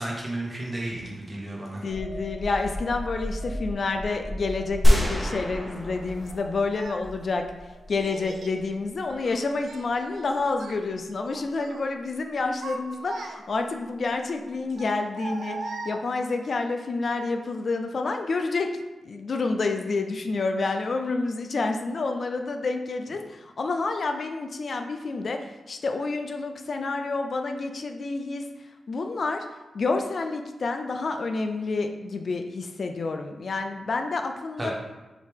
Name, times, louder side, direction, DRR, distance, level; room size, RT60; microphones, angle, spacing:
voice 1, 0.0-1.8 34.6-34.7, right 1 dB, 30° right, -3 dB, 1.3 m, -32 dB
voice 2, 1.8-7.5 7.9-18.7 19.0-28.5 28.9-29.5 29.7-34.7, left 3 dB, 60° left, 5 dB, 0.4 m, -29 dB
sound 1, 1.9-9.3 9.7-9.9, equal, 35° left, 1.3 m, -38 dB
sound 2, 4.8-7.1, equal, 10° left, 1.2 m, -23 dB
Child speech kid speaking, 5.2-5.4 6.3-7.0 8.0-8.6 9.0-10.3 10.5-10.8 11.2-11.8 12.3-13.7 14.7-16.4, right 3 dB, 75° right, 0.4 m, -39 dB
4.9 x 2.8 x 3.5 m, 1.1 s
cardioid pair, 50°, 0 cm